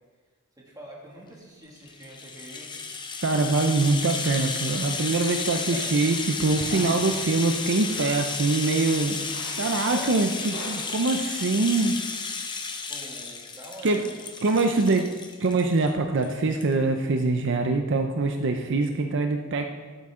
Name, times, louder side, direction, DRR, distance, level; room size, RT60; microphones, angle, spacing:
voice 1, 0.6-2.7 5.7-6.0 9.8-10.2 12.9-14.2, equal, 20° right, -3 dB, 2.1 m, -44 dB
Rattle (instrument), 1.8-15.9 16.2-16.3 16.6-16.7, left 4 dB, 20° left, 0.8 m, -33 dB
voice 2, 3.2-9.2 9.5-12.0 13.8-14.0 14.4-15.1 15.4-19.6, right 3 dB, 60° right, 5 dB, 0.6 m, -24 dB
sound 1, 5.0-11.2, left 1 dB, 85° left, 3.2 m, -46 dB
13.0 x 8.1 x 3.7 m, 1.4 s
head